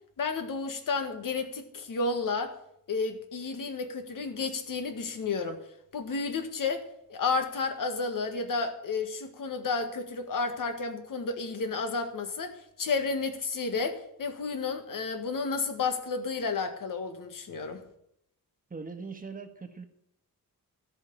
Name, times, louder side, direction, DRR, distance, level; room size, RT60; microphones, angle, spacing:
voice 1, 0.2-2.5 2.9-5.6 5.9-17.8, left 4 dB, 65° left, 7 dB, 1.8 m, -32 dB
voice 2, 18.7-19.8, right 4 dB, 25° right, 6 dB, 1.4 m, -41 dB
13.5 x 5.7 x 8.6 m, 0.75 s
wide cardioid pair, 140°, 35 cm